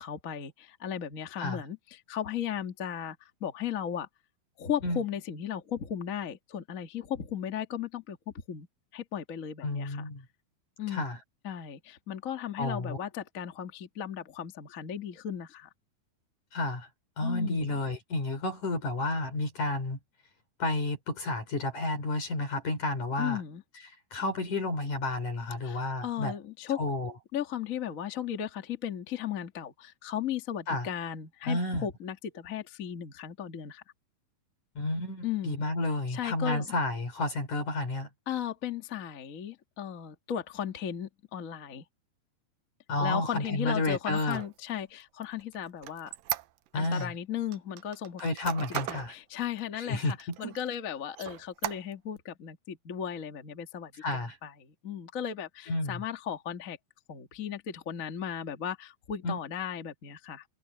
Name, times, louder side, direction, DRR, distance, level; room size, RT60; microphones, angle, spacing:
voice 1, 0.0-4.1 4.6-8.7 8.9-10.0 10.8-11.0 11.4-15.7 17.2-17.7 23.2-23.6 25.6-26.8 27.3-33.8 35.2-35.6 36.1-36.7 38.3-41.8 43.0-46.1 46.7-48.2 48.9-56.8 57.1-60.4, left 9 dB, 80° left, 0.7 m, -36 dB
voice 2, 9.6-10.2 10.9-11.2 12.6-13.0 16.5-16.9 17.2-20.0 20.6-23.4 24.1-26.4 26.7-27.1 30.7-30.9 31.4-31.9 34.8-38.1 42.9-44.4 46.7-47.1 48.2-49.1 49.7-50.6 54.0-54.4 55.7-56.0 59.2-59.4, left 2 dB, 50° left, 4.7 m, -31 dB
Squeak, 44.0-47.1 47.5-49.1 49.6-49.7 50.1-50.7 51.1-52.2, right 14 dB, 80° right, 2.1 m, -38 dB
omnidirectional pair, 4.7 m